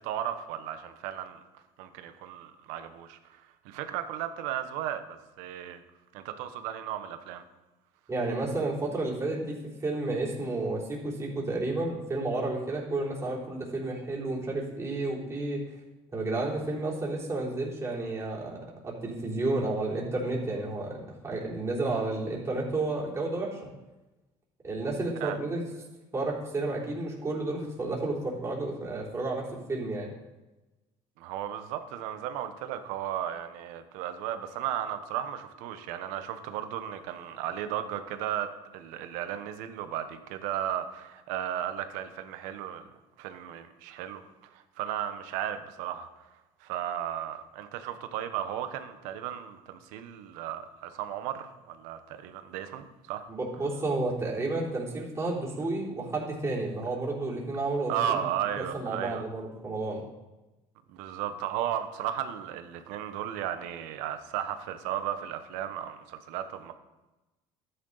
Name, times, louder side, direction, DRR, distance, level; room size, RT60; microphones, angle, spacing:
voice 1, 0.0-1.4 1.8-5.8 6.1-7.4 25.2-25.4 31.2-42.8 43.2-46.3 46.6-53.3 57.9-59.2 60.9-66.7, right 10 dB, 90° right, 9 dB, 1.1 m, -35 dB
voice 2, 8.1-15.6 16.1-23.7 24.6-25.6 26.1-30.1 53.3-58.2 58.7-60.1, right 2 dB, 25° right, -4 dB, 3.7 m, -31 dB
13.0 x 9.5 x 4.1 m, 1.1 s
cardioid pair, 115°, 12 cm